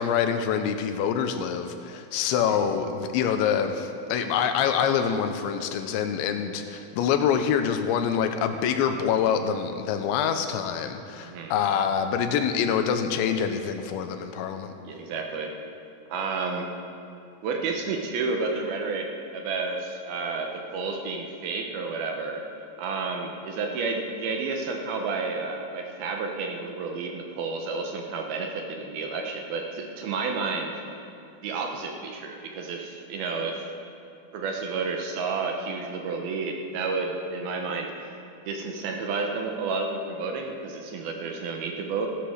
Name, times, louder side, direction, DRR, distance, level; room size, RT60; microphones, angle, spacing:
voice 1, 0.0-14.7, left 7 dB, 90° left, 7 dB, 3.2 m, -26 dB
voice 2, 11.2-11.6 14.8-15.5 16.1-16.7 17.4-22.5 22.8-30.8 31.4-33.7 34.3-38.2 38.5-42.1, right 4 dB, 70° right, 2 dB, 2.6 m, -31 dB
15.5 x 10.5 x 6.5 m, 2.7 s
omnidirectional pair, 5.1 m